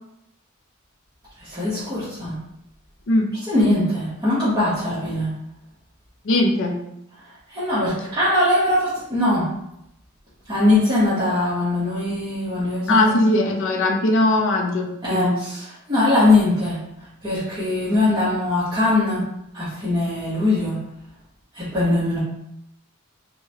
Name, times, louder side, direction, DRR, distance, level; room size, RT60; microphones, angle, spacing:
voice 1, 1.4-2.4 3.5-5.3 7.5-9.5 10.5-13.1 15.0-16.8 17.2-19.3 19.5-20.8 21.5-22.2, left 2 dB, 20° right, -12 dB, 0.9 m, -21 dB
voice 2, 6.2-6.8 12.9-15.4, left 2 dB, 60° left, 3 dB, 0.4 m, -20 dB
3.7 x 2.1 x 2.7 m, 0.82 s
head